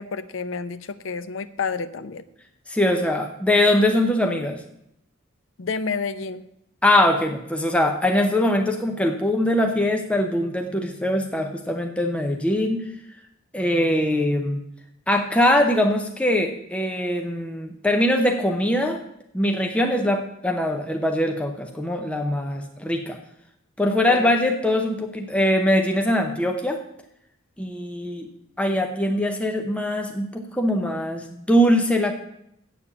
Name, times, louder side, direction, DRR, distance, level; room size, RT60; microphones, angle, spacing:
voice 1, 0.0-2.2 5.6-6.4 23.9-24.4, left 5 dB, 75° left, 13 dB, 0.6 m, -30 dB
voice 2, 2.7-4.6 6.8-12.8 13.5-14.6 15.1-19.0 19.3-23.2 23.8-26.8 27.6-28.3 28.6-32.1, left 1 dB, 5° left, 3 dB, 0.7 m, -22 dB
8.5 x 6.8 x 7.0 m, 0.76 s
head